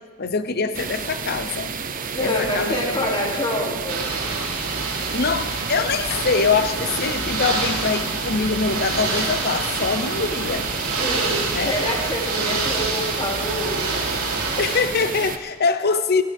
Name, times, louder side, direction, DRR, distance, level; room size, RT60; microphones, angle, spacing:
voice 1, 0.2-1.7 2.2-3.0 5.1-10.7 11.5-11.8 12.4-12.6 14.6-16.2, left 4 dB, 45° left, 11 dB, 0.8 m, -23 dB
sound 1, 0.7-15.4, right 6 dB, 40° right, 0.7 m, -31 dB
voice 2, 2.1-4.0 11.0-14.1, left 1 dB, 25° left, -2 dB, 2.8 m, -26 dB
Ocean / Boat Water vehicle, 3.9-14.8, right 3 dB, 90° right, 3.2 m, -27 dB
sound 2, 5.4-5.7 6.0-6.3 6.6-6.9 7.2-7.5 7.8-8.1 8.4-8.7 9.0-9.3 9.6-9.9 10.2-10.5 10.8-11.1 11.4-11.7 12.0-12.3 12.6-12.9 13.2-13.5 13.8-14.1 14.4-14.7, equal, 5° right, 4.7 m, -48 dB
20.0 x 15.5 x 3.6 m, 1.4 s
head